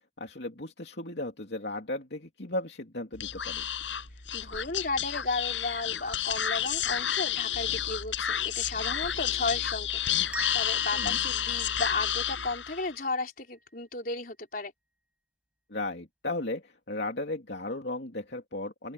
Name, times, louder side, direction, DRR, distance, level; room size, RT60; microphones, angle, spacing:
voice 1, 0.2-3.6 10.9-11.2 15.7-18.9, left 2 dB, 65° left, 2.9 m, -35 dB
Speech / Whispering, 3.1-12.9, left 10 dB, 85° left, 7.2 m, -31 dB
voice 2, 4.3-14.7, left 3 dB, 50° left, 4.4 m, -34 dB
sound 1, 10.3-13.1, right 1 dB, 5° right, 4.8 m, -42 dB
open air
head